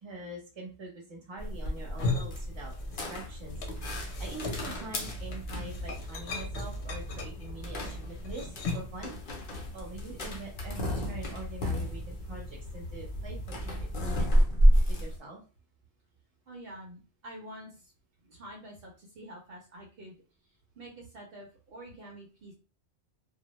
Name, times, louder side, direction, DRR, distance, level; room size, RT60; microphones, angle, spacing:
voice 1, 0.0-9.1 9.7-14.3 14.9-15.4, right 2 dB, 30° right, -1 dB, 0.8 m, -44 dB
sound 1, 1.4-15.2, equal, 55° left, 0.8 m, -31 dB
sound 2, 1.8-3.2 3.4-9.0, left 3 dB, 90° left, 0.9 m, -37 dB
voice 2, 16.5-17.9 18.2-22.5, right 1 dB, 65° right, 0 dB, 0.7 m, -48 dB
2.2 x 2.1 x 2.9 m, 0.35 s
omnidirectional pair, 1.1 m